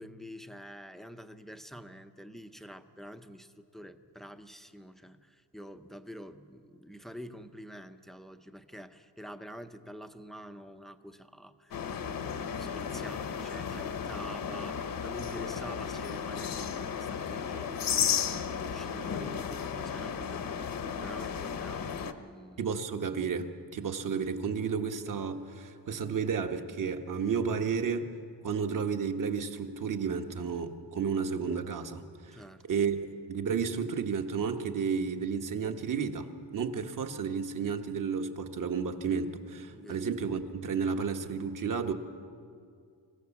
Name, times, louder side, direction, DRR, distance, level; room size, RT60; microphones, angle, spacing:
voice 1, 0.0-22.7 32.3-32.7 39.7-40.1, equal, ahead, 9 dB, 0.6 m, -47 dB
sound 1, 11.7-22.1, left 7 dB, 50° left, 1.0 m, -34 dB
voice 2, 22.6-28.1 28.4-32.4 32.7-33.0 33.3-36.3 36.5-41.9, right 6 dB, 45° right, 5 dB, 1.3 m, -32 dB
25.0 x 16.0 x 7.2 m, 2.3 s
cardioid pair, 150°, 44 cm